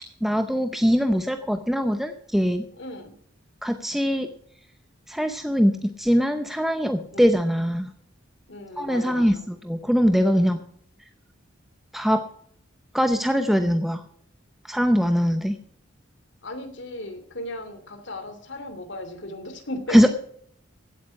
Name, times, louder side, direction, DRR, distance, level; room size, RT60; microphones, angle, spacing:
voice 1, 0.2-2.7 3.6-4.3 5.1-7.9 8.8-10.6 11.9-12.2 12.9-14.0 14.6-15.6 19.9-20.1, equal, ahead, 7 dB, 0.7 m, -22 dB
voice 2, 2.7-3.1 7.1-7.3 8.5-9.4 10.3-10.6 16.4-20.1, left 1 dB, 60° left, 8 dB, 2.8 m, -36 dB
15.5 x 8.8 x 5.8 m, 0.63 s
head